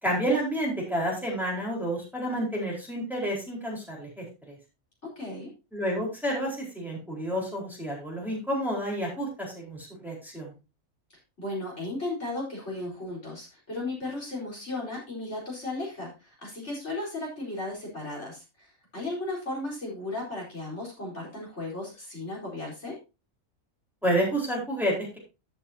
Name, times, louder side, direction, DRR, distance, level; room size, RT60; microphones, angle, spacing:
voice 1, 0.0-4.6 5.7-10.5 24.0-25.2, equal, ahead, -4 dB, 4.4 m, -30 dB
voice 2, 5.0-5.5 11.4-23.0, left 2 dB, 55° left, -3 dB, 4.7 m, -35 dB
14.5 x 7.0 x 2.8 m, 0.28 s
omnidirectional pair, 1.4 m